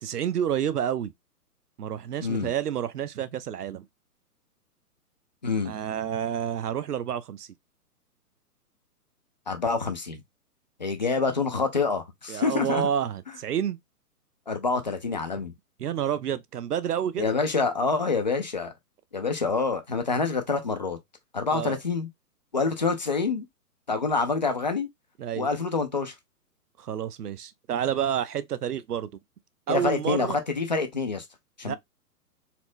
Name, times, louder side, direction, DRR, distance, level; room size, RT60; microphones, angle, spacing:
voice 1, 0.0-1.1 1.8-3.9 5.6-7.5 12.3-13.8 15.8-17.4 21.5-21.8 25.2-25.5 26.8-29.1 29.7-30.4 31.6-31.8, right 9 dB, 75° right, 0.5 m, -29 dB
voice 2, 9.5-10.2 10.8-12.9 14.5-15.5 17.2-18.7 19.1-21.0 21.3-22.1 22.5-23.4 23.9-24.9 25.3-26.1 29.7-31.2 31.6-31.8, left 4 dB, 30° left, 0.4 m, -26 dB
4.2 x 2.0 x 2.4 m
figure-of-eight pair, 125°, 47 cm